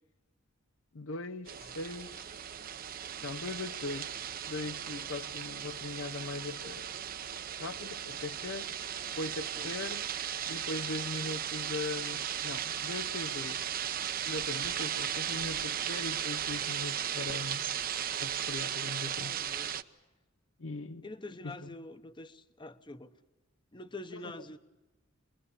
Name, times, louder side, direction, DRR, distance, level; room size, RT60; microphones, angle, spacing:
voice 1, 0.9-2.3 3.2-4.2 4.5-6.9 7.5-8.7 9.1-10.1 10.4-13.7 14.2-17.6 18.2-19.4 20.6-21.1 21.4-21.7 24.1-24.2, left 3 dB, 80° left, 0.8 m, -40 dB
sound 1, 1.5-19.8, right 9 dB, 45° right, 0.8 m, -36 dB
voice 2, 19.0-19.7 21.0-23.1 23.7-24.6, left 2 dB, 25° left, 0.9 m, -45 dB
26.0 x 22.0 x 8.4 m
head